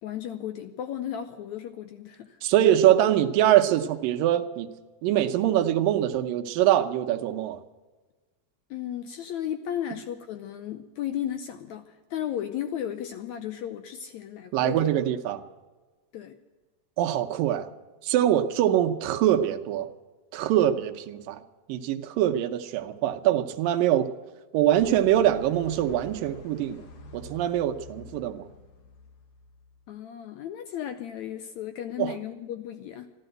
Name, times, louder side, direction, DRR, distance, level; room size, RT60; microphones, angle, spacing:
voice 1, 0.0-2.4 8.7-14.9 16.1-16.4 29.9-33.1, left 10 dB, 75° left, 9 dB, 1.7 m, -34 dB
voice 2, 2.4-4.7 5.0-7.6 14.5-15.4 17.0-17.7 18.0-19.9 20.3-21.4 21.7-24.1 24.5-26.8 27.1-28.5 32.0-32.1, right 12 dB, 80° right, 7 dB, 2.5 m, -23 dB
sound 1, 24.8-29.8, left 2 dB, 55° left, 2.0 m, -46 dB
14.5 x 12.0 x 7.8 m, 1.3 s
omnidirectional pair, 4.0 m